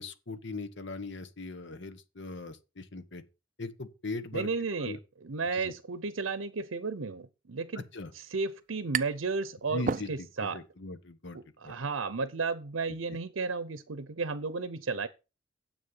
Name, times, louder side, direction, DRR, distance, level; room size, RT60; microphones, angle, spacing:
voice 1, 0.0-3.2 3.6-4.5 4.8-5.0 5.5-5.7 7.9-8.1 9.7-11.4 11.6-11.7 13.1-13.2, left 3 dB, 60° left, 1.2 m, -40 dB
voice 2, 4.3-7.9 8.1-10.6 11.3-15.1, right 4 dB, 80° right, 0.7 m, -33 dB
sound 1, 8.1-9.3 9.7-10.6, right 6 dB, 40° right, 0.4 m, -34 dB
9.7 x 7.5 x 5.5 m
head